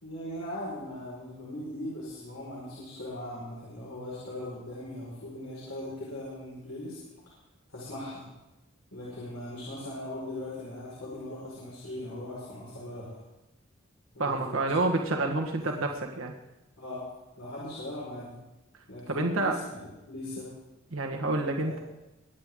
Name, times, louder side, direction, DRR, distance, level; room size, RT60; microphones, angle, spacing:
voice 1, 0.0-7.0 7.7-8.2 8.9-13.1 14.1-14.7 15.0-15.6 16.8-17.0 17.4-18.3 18.9-20.5 21.6-21.7, left 1 dB, 85° left, -7 dB, 5.0 m, -39 dB
voice 2, 14.2-16.3 19.1-19.6 20.9-21.8, right 2 dB, 80° right, 2 dB, 1.5 m, -28 dB
23.5 x 10.0 x 3.7 m, 0.96 s
head